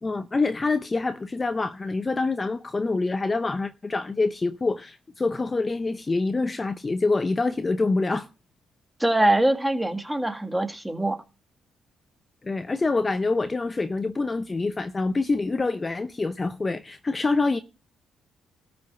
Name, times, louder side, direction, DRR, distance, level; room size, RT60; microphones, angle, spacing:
voice 1, 0.0-8.3 12.4-17.6, left 3 dB, 25° left, 0.7 m, -26 dB
voice 2, 9.0-11.2, right 1 dB, 10° right, 1.8 m, -23 dB
13.5 x 5.2 x 6.7 m
cardioid pair, 90°, 0 cm